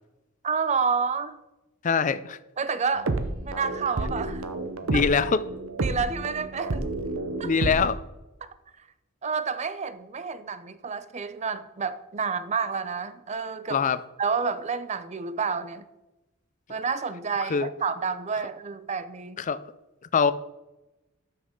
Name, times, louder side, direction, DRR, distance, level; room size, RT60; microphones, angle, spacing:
voice 1, 0.4-1.4 2.6-3.1 3.4-4.5 4.9-5.0 5.8-6.9 7.4-7.5 9.2-13.8 14.2-15.8 16.7-19.5, right 5 dB, 35° right, 13 dB, 0.5 m, -29 dB
voice 2, 1.8-2.4 4.8-5.4 7.4-8.0 13.7-14.0 17.5-17.7 19.4-19.6 20.1-20.3, left 5 dB, 40° left, 16 dB, 0.4 m, -23 dB
sound 1, 3.0-7.9, right 2 dB, 85° right, 0.8 m, -30 dB
12.5 x 6.2 x 3.8 m, 1.0 s
head